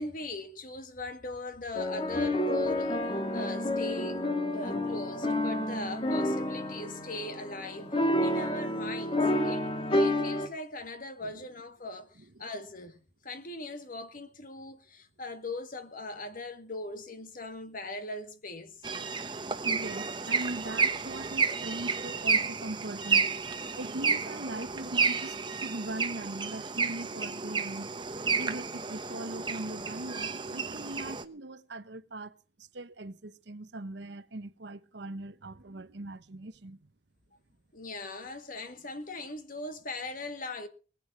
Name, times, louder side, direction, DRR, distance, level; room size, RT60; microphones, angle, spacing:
voice 1, 0.0-3.1 3.3-4.2 4.5-18.8 37.7-40.7, left 2 dB, 45° left, 1.8 m, -40 dB
sound 1, 1.7-10.5, left 1 dB, 30° left, 1.6 m, -29 dB
sound 2, 18.8-31.2, right 5 dB, 25° right, 1.0 m, -31 dB
voice 2, 19.6-23.3 23.8-27.9 28.4-32.3 32.6-36.8, right 2 dB, 65° right, 0.9 m, -40 dB
19.5 x 8.6 x 6.2 m
head